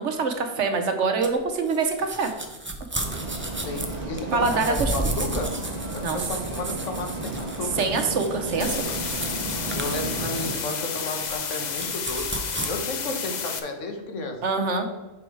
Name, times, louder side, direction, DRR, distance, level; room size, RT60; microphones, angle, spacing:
voice 1, 0.0-2.3 4.3-4.9 6.0-6.2 7.8-9.0 14.4-14.9, right 4 dB, 70° right, 6 dB, 1.1 m, -25 dB
sound 1, 1.2-12.7, right 2 dB, 15° right, 0.5 m, -34 dB
sound 2, 3.0-10.6, right 2 dB, 35° right, 1.1 m, -33 dB
voice 2, 3.6-5.6 5.9-7.9 9.7-14.4, left 2 dB, 75° left, 4 dB, 1.3 m, -33 dB
sound 3, 8.6-13.6, left 6 dB, 50° left, 0.6 m, -31 dB
6.2 x 4.8 x 4.6 m, 1.1 s
omnidirectional pair, 1.3 m